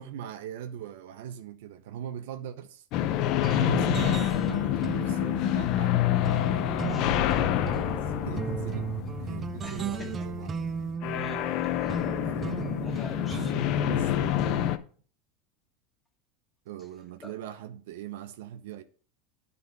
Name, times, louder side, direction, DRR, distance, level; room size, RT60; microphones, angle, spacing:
voice 1, 0.0-2.8 3.4-6.1 6.8-8.9 9.2-10.6 12.2-12.8 13.1-14.5 16.7-18.8, right 9 dB, 75° right, 0.8 m, -40 dB
sound 1, 2.9-14.8, left 12 dB, 45° left, 0.6 m, -28 dB
sound 2, 3.4-14.7, right 6 dB, 25° right, 0.4 m, -36 dB
voice 2, 6.6-7.3 9.6-10.1 11.1-12.0 12.8-13.9 17.2-17.3, equal, 15° left, 1.9 m, -43 dB
9.8 x 4.1 x 5.2 m
supercardioid pair, 150°, 0 cm